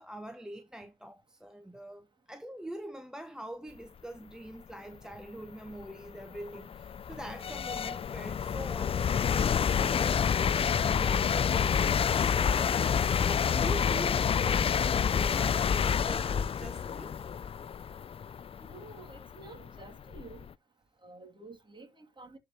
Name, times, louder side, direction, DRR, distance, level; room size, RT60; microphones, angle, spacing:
voice 1, 0.0-9.5 9.8-12.9 13.2-14.8 15.0-17.2, right 1 dB, 5° right, 0.9 m, -44 dB
sound 1, 5.0-5.1 5.7-20.5, left 7 dB, 30° left, 0.3 m, -28 dB
voice 2, 18.6-20.4 21.0-22.4, right 3 dB, 25° right, 2.5 m, -50 dB
11.5 x 4.8 x 2.9 m
supercardioid pair, 75°, 20 cm